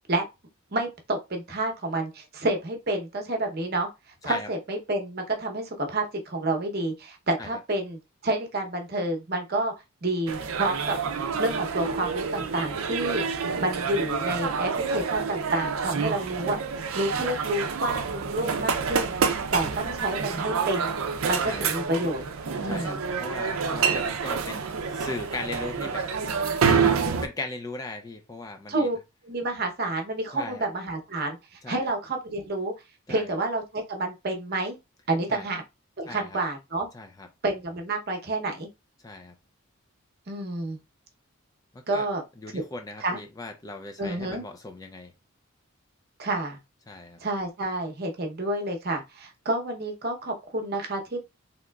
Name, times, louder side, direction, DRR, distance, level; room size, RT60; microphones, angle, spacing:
voice 1, 0.7-3.9 4.2-9.7 10.0-11.0 11.4-13.2 13.6-16.6 16.9-20.9 21.3-22.2 22.6-23.0 28.7-29.0 29.2-32.7 33.1-34.8 35.1-35.6 36.0-36.9 37.4-38.7 40.3-40.8 41.9-42.2 42.5-42.6 43.0-43.2 44.0-44.4 46.2-46.6 47.2-51.2, right 2 dB, 45° right, 0.8 m, -29 dB
sound 1, 10.3-27.3, right 5 dB, 75° right, 0.5 m, -28 dB
voice 2, 22.7-26.1 27.2-28.9 30.3-30.6 31.6-31.9 33.1-33.4 35.3-35.5 36.1-36.4 36.9-37.3 39.0-39.4 41.7-42.1 42.4-45.1 46.9-47.2, left 2 dB, 15° left, 0.3 m, -38 dB
3.6 x 2.8 x 2.3 m
head